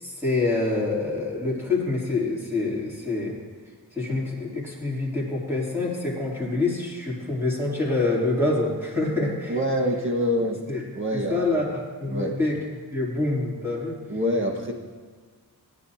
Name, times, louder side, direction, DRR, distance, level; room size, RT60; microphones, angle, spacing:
voice 1, 0.0-3.4 3.9-9.6 10.7-10.8 11.1-12.6 12.9-14.0, left 2 dB, 5° right, -6 dB, 3.1 m, -26 dB
voice 2, 9.5-10.6 10.9-11.6 12.1-12.3 14.1-14.7, equal, 30° right, 0 dB, 1.6 m, -25 dB
18.0 x 10.0 x 2.8 m, 1.5 s
wide cardioid pair, 135°, 39 cm